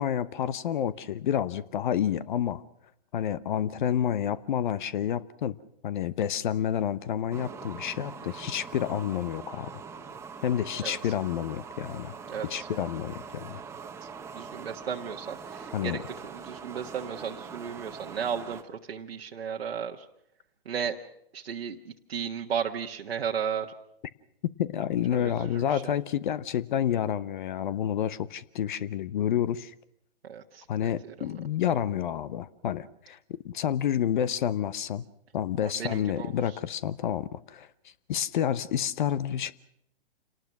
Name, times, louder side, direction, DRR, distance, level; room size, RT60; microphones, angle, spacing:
voice 1, 0.0-2.6 3.1-5.6 5.8-9.7 10.4-12.2 12.4-13.6 15.7-16.0 24.6-29.7 30.7-35.0 35.3-37.7 38.1-39.5, left 10 dB, 50° left, 18 dB, 0.9 m, -29 dB
sound 1, 7.3-18.6, right 5 dB, 10° right, 1.3 m, -43 dB
voice 2, 12.3-12.7 14.3-15.9 16.2-20.0 20.6-21.0 21.3-23.7 25.1-25.8 30.3-30.6 35.6-36.3, right 7 dB, 75° right, 1 dB, 1.5 m, -34 dB
28.0 x 19.0 x 6.0 m, 0.77 s
hypercardioid pair, 135°, 31 cm